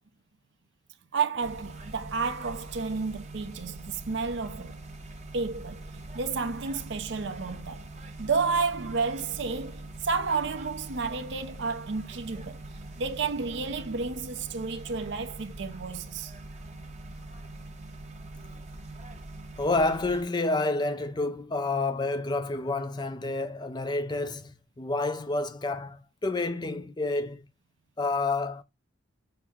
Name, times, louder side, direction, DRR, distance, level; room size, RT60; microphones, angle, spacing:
voice 1, 1.1-4.8 5.3-5.8 6.1-7.9 8.2-12.7 13.0-16.3, right 4 dB, 55° right, 0.5 m, -31 dB
sound 1, 1.4-20.2, right 2 dB, 35° right, 0.8 m, -43 dB
voice 2, 19.6-27.5 28.0-28.6, left 2 dB, 20° left, 0.4 m, -29 dB
5.8 x 2.1 x 3.5 m
head